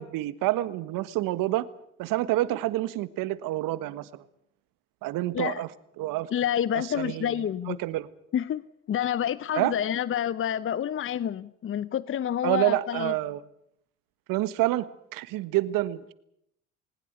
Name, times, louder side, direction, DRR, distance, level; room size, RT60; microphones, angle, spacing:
voice 1, 0.0-1.7 2.0-4.2 5.0-5.7 6.0-6.3 6.7-7.4 7.7-8.1 9.5-9.7 12.4-13.4 14.3-14.9 15.1-16.1, right 16 dB, 65° right, 16 dB, 1.5 m, -28 dB
voice 2, 6.3-7.8 8.3-13.1, left 10 dB, 35° left, 18 dB, 0.8 m, -28 dB
20.0 x 20.0 x 8.3 m, 0.73 s
hypercardioid pair, 65°, 37 cm